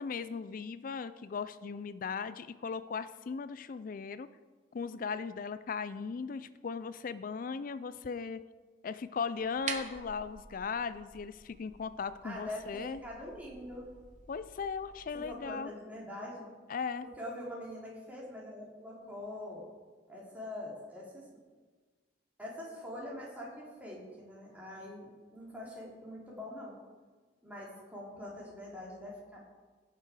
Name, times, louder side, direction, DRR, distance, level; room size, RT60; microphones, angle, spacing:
voice 1, 0.0-4.3 4.7-8.4 8.8-13.0 14.3-15.7 16.7-17.0, left 5 dB, 50° left, 14 dB, 0.4 m, -38 dB
sound 1, 9.4-15.3, right 6 dB, 45° right, 0.9 m, -47 dB
voice 2, 12.2-13.9 15.1-16.5 17.0-19.6 20.1-21.3 22.4-26.8 27.4-29.4, left 1 dB, 10° right, -4 dB, 2.9 m, -44 dB
17.0 x 6.7 x 4.9 m, 1.4 s
head